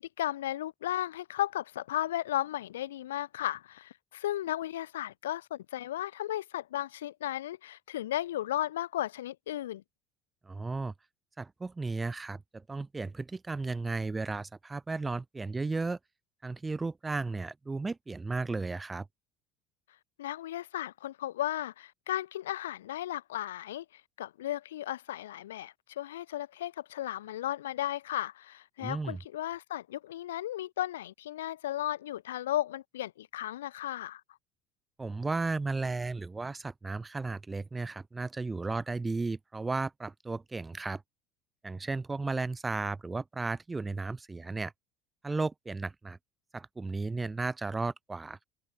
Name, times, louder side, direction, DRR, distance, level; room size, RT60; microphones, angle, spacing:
voice 1, 0.0-9.8 20.2-34.2, left 13 dB, 75° left, 0.3 m, -35 dB
voice 2, 10.5-10.9 11.4-16.0 16.4-19.1 28.8-29.2 35.0-41.0 41.6-44.7 45.2-46.2 46.5-48.4, right 3 dB, 15° right, 1.9 m, -34 dB
open air
figure-of-eight pair, 65°, 0 cm